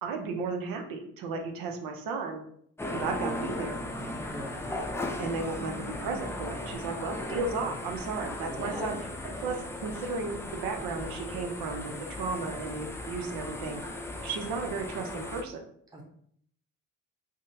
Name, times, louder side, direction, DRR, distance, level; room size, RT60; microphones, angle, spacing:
voice 1, 0.0-2.4 2.9-3.8 5.2-9.0 9.2-13.8 14.2-15.7, right 4 dB, 90° right, 4 dB, 0.6 m, -34 dB
sound 1, 2.8-15.4, left 1 dB, 10° left, 0.4 m, -37 dB
voice 2, 4.3-4.7 8.5-9.0 15.9-16.0, equal, 10° right, -1 dB, 0.8 m, -39 dB
3.5 x 2.0 x 2.7 m, 0.66 s
cardioid pair, 70°, 34 cm